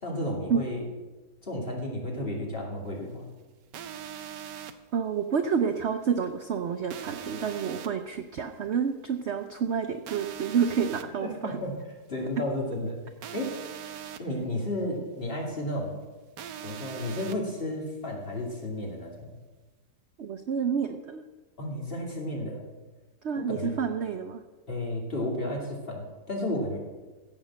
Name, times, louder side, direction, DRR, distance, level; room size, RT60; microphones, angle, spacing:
voice 1, 0.0-0.9 1.4-3.3 11.2-11.7 12.1-13.0 13.3-13.6 14.2-16.0 16.6-19.3 21.6-22.6 23.3-23.7 24.7-26.8, left 1 dB, 35° left, -1 dB, 2.9 m, -32 dB
sound 1, 3.7-4.7 6.9-7.9 10.1-11.0 13.2-14.2 16.4-17.4, right 9 dB, 85° right, 1.4 m, -40 dB
voice 2, 4.9-11.6 20.2-21.2 23.2-24.4, right 7 dB, 60° right, 7 dB, 0.7 m, -29 dB
15.5 x 6.7 x 7.5 m, 1.2 s
omnidirectional pair, 1.8 m